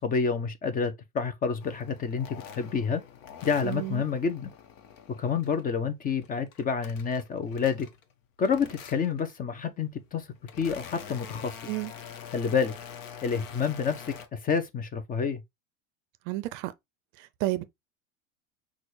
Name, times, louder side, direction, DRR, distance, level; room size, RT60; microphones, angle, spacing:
voice 1, 0.0-3.0 3.4-4.5 5.1-7.9 8.4-10.2 10.6-11.5 12.3-12.7 13.2-15.4, left 6 dB, 20° left, 0.5 m, -28 dB
sound 1, 1.6-5.7 6.1-8.1 8.4-9.3 10.0-14.3, left 8 dB, 65° left, 1.1 m, -46 dB
voice 2, 3.6-4.0 11.7-11.9 16.3-16.7 17.2-17.6, right 17 dB, 50° right, 0.5 m, -31 dB
5.9 x 2.4 x 3.2 m
hypercardioid pair, 100°, 41 cm